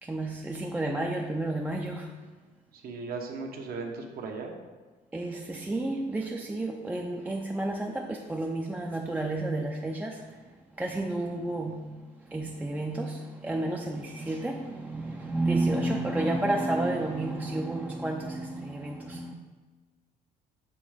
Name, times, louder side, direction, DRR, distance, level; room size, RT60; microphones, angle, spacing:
voice 1, 0.0-2.1 5.1-10.4 10.8-19.3, right 2 dB, 10° right, 0 dB, 0.4 m, -31 dB
voice 2, 2.7-4.5, right 4 dB, 60° right, 2 dB, 1.0 m, -37 dB
6.8 x 3.2 x 5.0 m, 1.3 s
cardioid pair, 110°, 17 cm